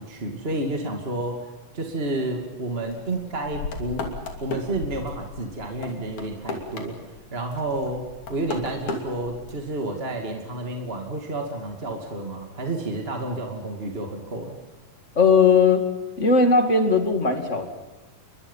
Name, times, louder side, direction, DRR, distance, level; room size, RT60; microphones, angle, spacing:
voice 1, 0.0-1.4 1.7-4.1 4.4-6.9 7.3-14.6, right 2 dB, 20° right, 2 dB, 2.1 m, -30 dB
sound 1, 2.8-7.2 7.5-9.5, left 3 dB, 55° left, 4.1 m, -35 dB
voice 2, 15.2-15.8 16.2-17.7, left 4 dB, 25° left, 6 dB, 2.0 m, -18 dB
29.5 x 23.5 x 5.6 m, 1.1 s
omnidirectional pair, 4.0 m